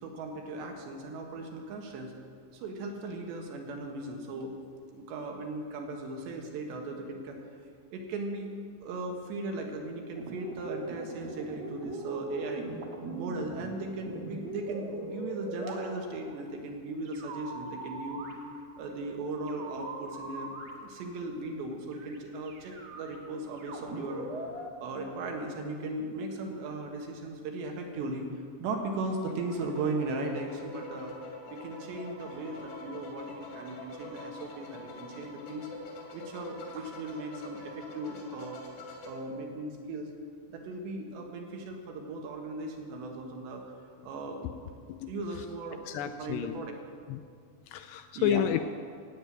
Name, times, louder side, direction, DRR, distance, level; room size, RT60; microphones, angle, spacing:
voice 1, 0.0-2.1 2.5-4.5 4.9-7.4 7.9-12.7 13.1-18.3 18.8-24.3 24.8-28.3 28.6-31.1 31.5-35.7 36.1-38.6 39.0-40.1 40.5-43.7 44.0-44.6 45.1-46.8 48.2-48.5, right 2 dB, 75° right, 2 dB, 3.7 m, -37 dB
sound 1, 10.1-16.4 17.1-18.8 19.5-21.2 21.9-22.2 22.5-24.7, right 2 dB, 50° right, 2.2 m, -40 dB
sound 2, 29.2-39.1, left 2 dB, 65° left, 4.3 m, -45 dB
voice 2, 45.9-46.5 47.1-47.2 47.7-48.7, left 11 dB, 85° left, 10 dB, 2.5 m, -30 dB
16.0 x 8.0 x 9.3 m, 2.1 s
omnidirectional pair, 5.2 m